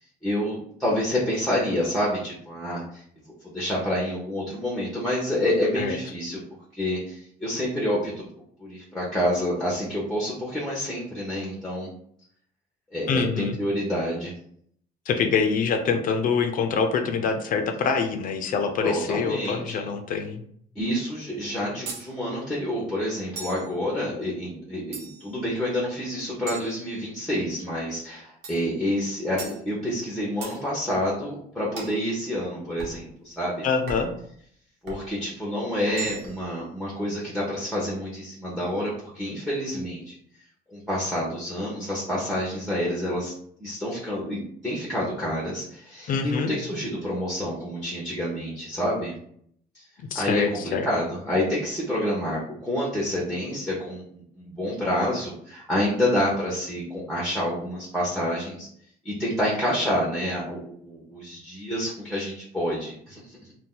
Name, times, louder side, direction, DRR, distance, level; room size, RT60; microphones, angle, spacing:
voice 1, 0.2-3.0 3.4-6.4 6.7-8.2 8.6-11.9 12.9-14.3 18.8-19.9 20.7-33.7 34.8-40.1 40.7-43.3 43.6-49.1 49.7-49.8 50.1-54.0 54.4-58.7 59.0-63.4, left 1 dB, 5° left, -5 dB, 0.9 m, -28 dB
voice 2, 13.1-13.6 15.1-20.4 33.6-34.1 46.1-46.5 50.1-50.9, left 5 dB, 55° left, 6 dB, 0.5 m, -25 dB
sound 1, 21.9-22.1 23.4-23.7 24.9-25.4 26.5-27.4 28.4-28.7 29.4-29.6 30.4-30.6 31.8-32.0 32.8-33.0 33.9-34.2 34.9-35.1 35.9-36.5, right 5 dB, 85° right, 0.9 m, -38 dB
2.7 x 2.2 x 3.7 m, 0.65 s
cardioid pair, 110°, 17 cm